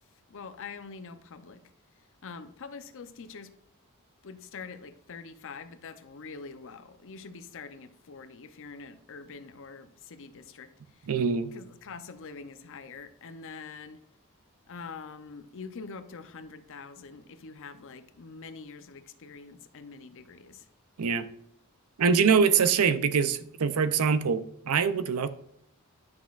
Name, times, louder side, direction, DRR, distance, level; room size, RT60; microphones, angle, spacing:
voice 1, 0.3-1.6 2.2-3.5 4.2-11.1 11.5-14.0 14.7-20.7, left 4 dB, 60° left, 11 dB, 0.6 m, -45 dB
voice 2, 11.1-11.5 21.0-21.3 22.0-25.3, right 6 dB, 80° right, 13 dB, 0.5 m, -24 dB
10.5 x 6.0 x 2.4 m, 0.72 s
head